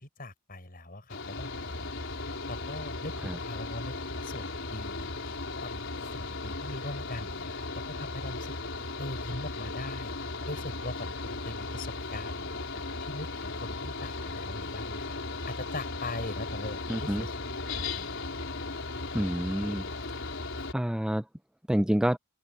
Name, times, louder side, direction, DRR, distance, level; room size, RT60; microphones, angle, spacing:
voice 1, 0.0-1.9 2.5-5.1 5.6-5.8 6.1-8.5 9.0-10.1 10.5-15.2 15.5-18.3, left 2 dB, 45° left, 6.8 m, -41 dB
Mechanical fan, 1.1-20.7, left 3 dB, 60° left, 4.6 m, -36 dB
voice 2, 16.9-17.2 19.1-19.8 20.7-21.2 21.7-22.2, equal, 5° right, 0.4 m, -27 dB
head